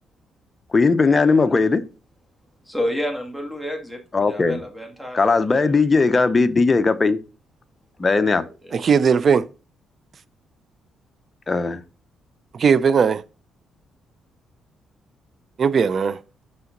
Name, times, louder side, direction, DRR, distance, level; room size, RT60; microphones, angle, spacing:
voice 1, 0.7-1.8 4.1-4.6 5.1-7.2 8.0-8.4 11.5-11.8, left 4 dB, 30° left, 0.8 m, -18 dB
voice 2, 2.7-4.0 4.3-5.2 5.5-5.8 8.6-8.8, left 1 dB, 5° right, 2.0 m, -29 dB
voice 3, 8.7-9.5 12.5-13.2 15.6-16.2, right 6 dB, 50° right, 0.5 m, -18 dB
6.2 x 5.6 x 3.9 m
cardioid pair, 90°, 0 cm